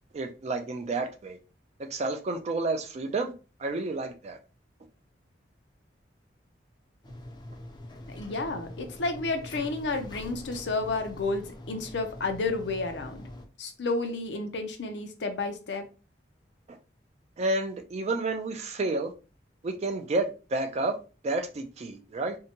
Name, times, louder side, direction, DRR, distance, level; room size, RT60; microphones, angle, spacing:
voice 1, 0.1-1.4 1.8-3.3 3.6-4.4 17.4-19.1 19.6-21.0 21.2-22.4, right 2 dB, 40° right, 0.4 m, -30 dB
sound 1, 7.0-13.5, left 1 dB, 25° left, 0.5 m, -44 dB
voice 2, 8.1-13.2 13.6-15.8, left 3 dB, 75° left, 0.6 m, -31 dB
2.7 x 2.2 x 2.8 m
head